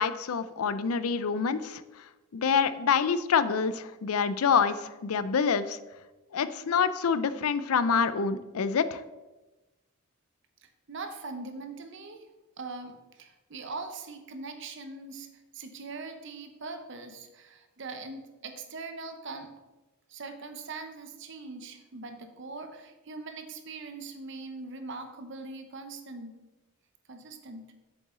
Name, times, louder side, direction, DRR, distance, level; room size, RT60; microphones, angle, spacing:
voice 1, 0.0-1.8 2.3-5.8 6.3-9.0, left 6 dB, 90° left, 14 dB, 0.5 m, -26 dB
voice 2, 10.9-12.3 12.6-19.6 20.1-26.4 27.1-27.7, right 3 dB, 55° right, 7 dB, 0.8 m, -41 dB
7.8 x 7.0 x 3.7 m, 1.1 s
head